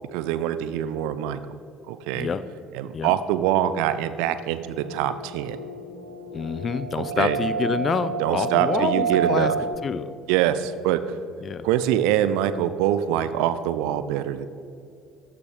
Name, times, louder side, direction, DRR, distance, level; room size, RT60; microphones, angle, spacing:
voice 1, 0.1-1.5 1.9-2.3 2.7-5.6 6.9-7.4 8.2-9.5 10.3-11.0 11.6-14.5, right 11 dB, 60° right, 12 dB, 0.5 m, -24 dB
sound 1, 4.5-9.7, right 5 dB, 60° left, 2.9 m, -29 dB
voice 2, 6.3-9.5 9.8-10.1 11.4-11.7, left 6 dB, 35° left, 14 dB, 0.5 m, -27 dB
14.0 x 6.0 x 5.2 m, 2.5 s
figure-of-eight pair, 55°, 0 cm